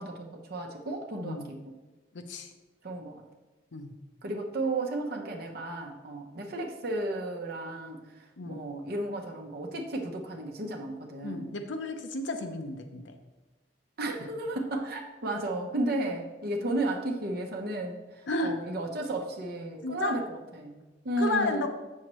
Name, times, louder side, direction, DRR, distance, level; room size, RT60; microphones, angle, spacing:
voice 1, 0.0-1.6 2.8-3.2 4.2-11.5 14.0-21.7, right 1 dB, 55° right, 2 dB, 0.8 m, -33 dB
voice 2, 2.1-2.5 3.7-3.9 8.4-8.6 11.2-13.1 18.3-18.6 19.8-20.2 21.2-21.7, left 2 dB, 75° left, 6 dB, 0.7 m, -32 dB
7.5 x 6.4 x 3.0 m, 1.2 s
head